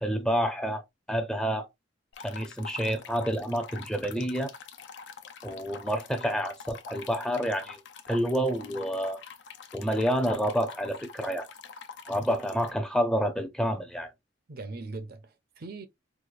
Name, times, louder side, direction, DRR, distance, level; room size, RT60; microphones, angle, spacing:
voice 1, 0.0-0.8 1.1-1.7 2.2-4.5 5.4-7.8 8.1-9.2 9.7-11.5 12.1-14.1, equal, 5° left, 0.5 m, -28 dB
sound 1, 2.1-12.7, left 5 dB, 70° left, 0.5 m, -45 dB
voice 2, 14.5-15.9, right 3 dB, 55° right, 0.6 m, -40 dB
4.7 x 2.0 x 2.4 m
head